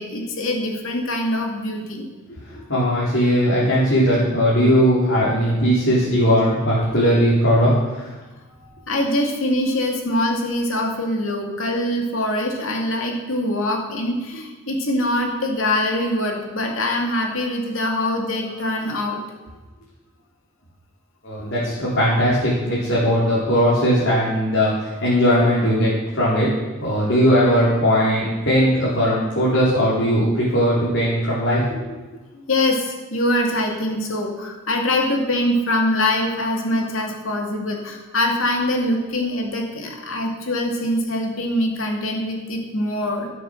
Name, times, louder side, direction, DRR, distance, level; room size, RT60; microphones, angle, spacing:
voice 1, 0.0-2.0 8.9-19.2 32.5-43.3, left 1 dB, 80° left, 1 dB, 2.3 m, -23 dB
voice 2, 2.5-7.7 21.2-26.5 26.8-31.8, equal, 60° left, -8 dB, 3.5 m, -18 dB
13.0 x 7.6 x 6.4 m, 1.2 s
head